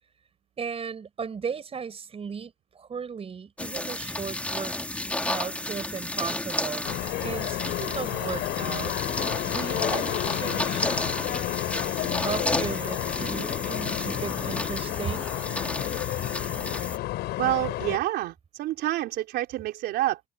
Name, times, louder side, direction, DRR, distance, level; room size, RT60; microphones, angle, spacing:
voice 1, 0.6-4.8 5.3-6.9 7.2-8.9 9.5-10.9 12.2-15.3, right 6 dB, 35° right, 6.3 m, -36 dB
sound 1, 3.6-17.0, left 1 dB, 10° left, 2.3 m, -32 dB
sound 2, 6.8-18.0, left 16 dB, 80° left, 4.5 m, -31 dB
voice 2, 17.3-20.2, right 15 dB, 80° right, 4.2 m, -28 dB
cardioid pair, 110°, 17 cm